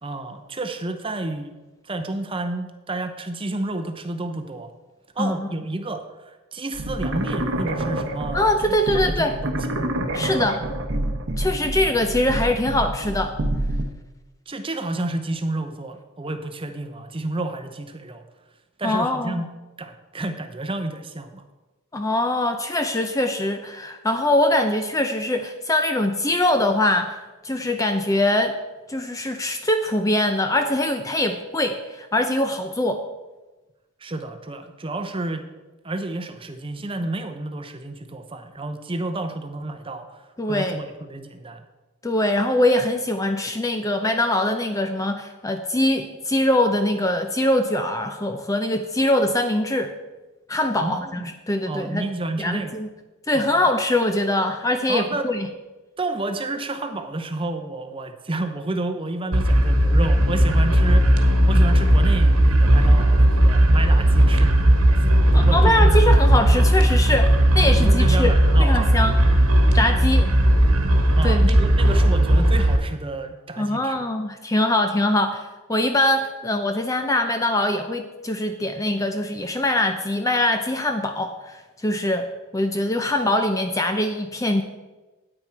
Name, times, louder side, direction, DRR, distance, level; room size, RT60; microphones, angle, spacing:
voice 1, 0.0-1.5 1.8-4.7 5.2-8.5 9.0-9.7 14.5-18.2 18.8-19.5 19.8-21.4 34.0-35.5 35.8-41.6 50.8-51.3 51.7-52.7 53.3-53.5 54.9-55.3 56.0-61.2 61.5-64.5 65.0-66.0 67.6-68.9 71.2-74.0, right 2 dB, 25° right, 7 dB, 0.7 m, -30 dB
voice 2, 5.2-5.5 8.3-9.3 10.1-10.6 11.4-13.4 18.8-19.4 21.9-27.2 27.4-28.6 28.9-33.0 40.4-40.8 42.0-49.9 50.5-52.1 52.4-52.9 53.3-55.5 65.3-69.2 69.7-70.3 71.2-71.5 73.6-82.3 82.5-84.6, left 1 dB, 15° left, 6 dB, 0.5 m, -23 dB
sound 1, 6.7-13.9, right 1 dB, 55° right, 0.9 m, -27 dB
sound 2, 59.3-72.8, right 1 dB, 75° right, 1.4 m, -16 dB
9.6 x 8.9 x 4.5 m, 1.1 s
head